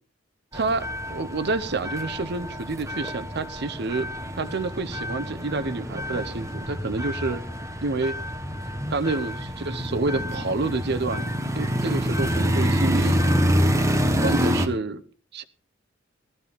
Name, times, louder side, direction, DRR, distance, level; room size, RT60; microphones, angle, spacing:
sound 1, 0.5-14.7, equal, 15° right, 1.2 m, -27 dB
voice 1, 0.5-4.1 4.4-7.4 7.8-8.2 8.9-13.3 14.2-15.0 15.3-15.4, right 3 dB, 55° right, 0.8 m, -28 dB
17.5 x 13.5 x 3.5 m
head